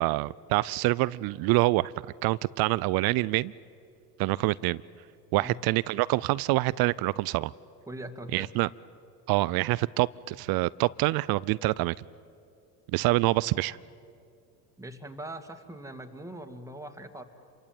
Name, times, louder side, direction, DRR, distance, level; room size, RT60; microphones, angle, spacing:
voice 1, 0.0-1.9 2.2-3.5 4.2-4.8 5.3-7.5 8.3-8.7 9.3-11.9 12.9-13.8, right 20 dB, 50° right, 21 dB, 0.6 m, -26 dB
voice 2, 7.9-8.5 14.8-17.2, right 1 dB, 5° right, 5 dB, 2.4 m, -41 dB
27.5 x 23.5 x 8.9 m, 2.5 s
hypercardioid pair, 85°, 48 cm